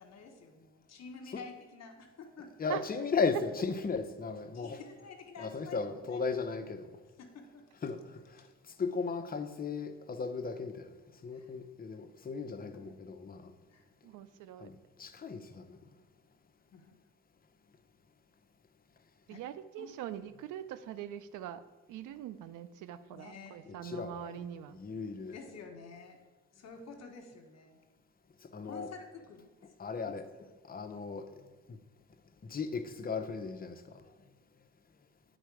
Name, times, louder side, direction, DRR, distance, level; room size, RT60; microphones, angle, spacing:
voice 1, 0.0-2.7 4.5-6.2 7.2-7.7 8.4-8.5 11.3-11.5 12.6-12.8 13.7-13.9 16.7-17.0 19.3-19.5 19.8-19.9 23.1-23.7 25.2-26.2 26.5-27.8 28.7-29.7 30.0-30.2, left 4 dB, 60° left, 4 dB, 1.3 m, -50 dB
voice 2, 2.6-4.8 5.4-6.9 7.8-8.5 8.8-10.9 11.2-13.5 14.6-15.8 23.7-25.4 28.4-28.9 29.6-31.8 32.4-34.0, left 4 dB, 30° left, 8 dB, 0.7 m, -36 dB
voice 3, 14.0-14.7 19.3-21.6 21.9-24.8, right 10 dB, 85° right, 13 dB, 0.5 m, -42 dB
9.0 x 4.3 x 4.8 m, 1.4 s
cardioid pair, 90°, 30 cm